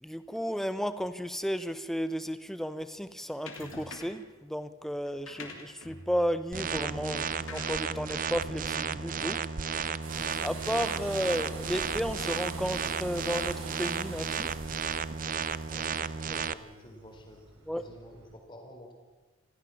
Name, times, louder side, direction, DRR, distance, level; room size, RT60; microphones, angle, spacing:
voice 1, 0.0-9.4 10.4-14.6 17.7-17.8, equal, ahead, 11 dB, 0.8 m, -33 dB
sound 1, 3.5-4.3 5.0-9.7, left 3 dB, 65° left, 2.9 m, -47 dB
sound 2, 6.5-16.5, right 6 dB, 40° right, 0.6 m, -33 dB
sound 3, 10.0-18.3, right 3 dB, 75° right, 5.9 m, -45 dB
voice 2, 15.7-18.9, equal, 20° left, 2 dB, 4.1 m, -50 dB
26.5 x 16.0 x 7.2 m, 1.3 s
head